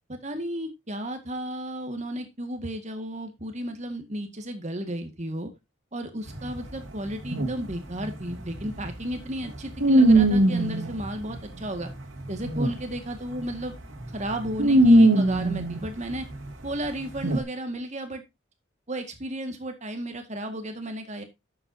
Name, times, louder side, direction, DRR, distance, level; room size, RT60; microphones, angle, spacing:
voice 1, 0.1-5.5 5.9-11.9 12.3-13.7 14.1-16.3 16.6-18.2 18.9-21.2, right 1 dB, 35° right, 6 dB, 1.9 m, -33 dB
sound 1, 6.3-13.0 13.3-13.6 14.0-16.5 17.2-17.4, right 1 dB, 80° right, 2.8 m, -21 dB
11.0 x 8.0 x 2.8 m, 0.22 s
head